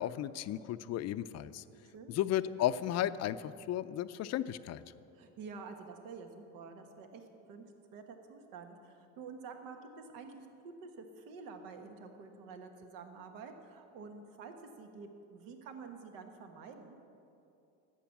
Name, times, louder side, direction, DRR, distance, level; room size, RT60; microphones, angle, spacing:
voice 1, 0.0-1.6 2.1-4.8, left 12 dB, 50° left, 14 dB, 0.5 m, -34 dB
voice 2, 1.8-2.2 5.1-7.6 7.9-17.0, right 4 dB, 80° right, 5 dB, 1.4 m, -49 dB
12.0 x 8.3 x 7.2 m, 2.7 s
supercardioid pair, 100°, 35 cm